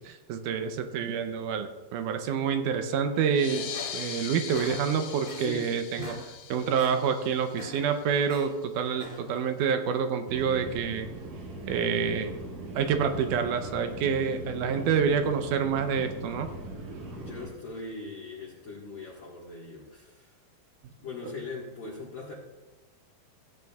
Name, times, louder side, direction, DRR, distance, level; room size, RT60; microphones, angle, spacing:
voice 1, 0.0-11.1 11.7-12.3 12.8-16.5, right 6 dB, 75° right, 7 dB, 2.0 m, -28 dB
sound 1, 3.3-8.4, left 8 dB, 90° left, 1.4 m, -41 dB
sound 2, 3.5-4.2 4.5-5.6 5.9-6.3 6.6-7.0 7.4-8.5 8.9-9.4, equal, 15° right, 2.0 m, -44 dB
voice 2, 5.4-5.7 17.2-20.3 21.0-22.3, left 3 dB, 50° left, -5 dB, 1.8 m, -40 dB
sound 3, 10.3-17.5, right 2 dB, 60° right, 2.6 m, -40 dB
16.0 x 9.0 x 2.3 m, 1.2 s
omnidirectional pair, 4.2 m